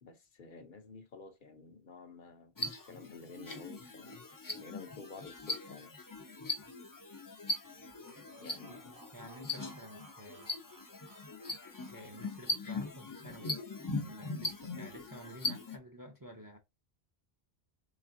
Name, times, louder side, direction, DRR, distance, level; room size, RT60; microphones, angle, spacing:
voice 1, 0.0-2.5 2.9-4.2 4.6-5.9 8.4-8.9, left 4 dB, 55° left, 0.8 m, -51 dB
sound 1, 2.6-15.8, left 2 dB, 30° left, 0.4 m, -40 dB
sound 2, 7.6-12.8, right 3 dB, 60° right, 1.3 m, -60 dB
voice 2, 9.1-10.5 11.9-13.6 14.0-16.6, equal, 25° right, 0.5 m, -51 dB
4.0 x 3.2 x 2.5 m
omnidirectional pair, 1.0 m